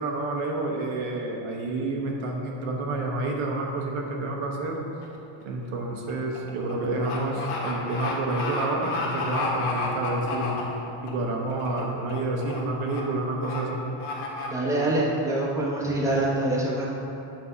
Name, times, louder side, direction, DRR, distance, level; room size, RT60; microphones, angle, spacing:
voice 1, 0.0-4.8 5.4-10.5 11.0-13.8, right 2 dB, 85° right, 0 dB, 1.0 m, -29 dB
sound 1, 5.0-5.3 5.6-11.1 11.5-11.8 12.1-12.6 12.9-13.0 13.4-13.6 14.0-14.5, left 3 dB, 90° left, 1.3 m, -32 dB
voice 2, 14.5-16.9, right 1 dB, 5° right, -5 dB, 0.8 m, -25 dB
7.5 x 2.7 x 5.5 m, 2.8 s
cardioid pair, 145°, 48 cm